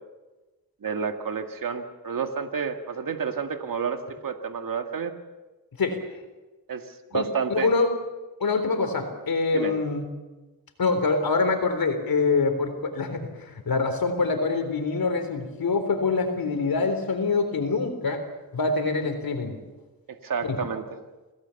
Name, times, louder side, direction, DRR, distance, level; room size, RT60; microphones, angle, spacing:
voice 1, 0.8-5.1 6.7-6.9 7.1-7.7 9.5-9.7 20.1-21.0, right 6 dB, 60° right, 6 dB, 2.1 m, -30 dB
voice 2, 7.5-7.9 8.4-10.0 10.8-18.2 18.5-19.6 20.4-20.6, left 4 dB, 65° left, 7 dB, 3.8 m, -25 dB
27.0 x 18.5 x 7.2 m, 1.2 s
cardioid pair, 80°, 37 cm